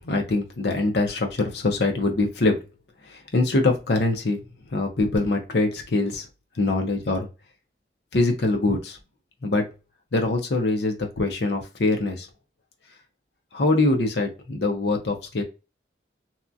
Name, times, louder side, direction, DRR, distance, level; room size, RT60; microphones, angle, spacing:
voice 1, 0.0-2.6 3.1-4.4 4.7-6.3 6.6-7.3 8.1-9.0 9.4-9.7 10.1-12.3 13.5-15.4, left 2 dB, 70° left, 4 dB, 0.7 m, -23 dB
2.9 x 2.3 x 2.5 m, 0.28 s
head